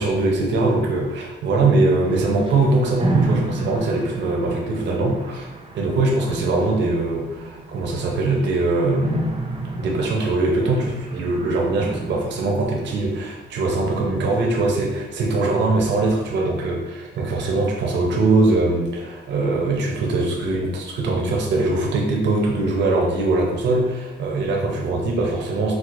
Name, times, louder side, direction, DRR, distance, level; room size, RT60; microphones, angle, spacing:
voice 1, 0.0-5.5 5.7-9.1 9.8-25.7, right 2 dB, 65° right, -1 dB, 0.7 m, -21 dB
sound 1, 2.0-14.1, right 2 dB, 25° right, 0.5 m, -31 dB
4.6 x 2.0 x 2.5 m, 1.2 s
cardioid pair, 90°, 20 cm